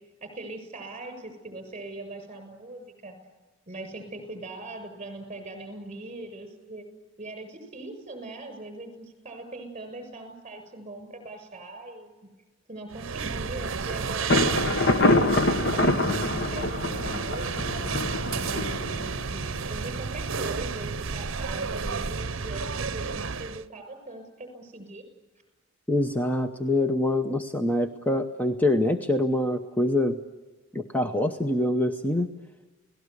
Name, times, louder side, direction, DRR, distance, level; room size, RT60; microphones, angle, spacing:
voice 1, 0.2-3.2 3.7-6.9 7.2-12.1 12.7-25.0, right 2 dB, 30° right, 7 dB, 6.7 m, -41 dB
sound 1, 12.9-23.6, right 5 dB, 65° right, 0.8 m, -31 dB
Thunder, 14.3-20.0, left 2 dB, 50° left, 1.4 m, -25 dB
voice 2, 25.9-30.2 30.7-32.3, left 1 dB, 10° left, 5 dB, 0.9 m, -25 dB
29.5 x 18.5 x 8.3 m, 1.2 s
head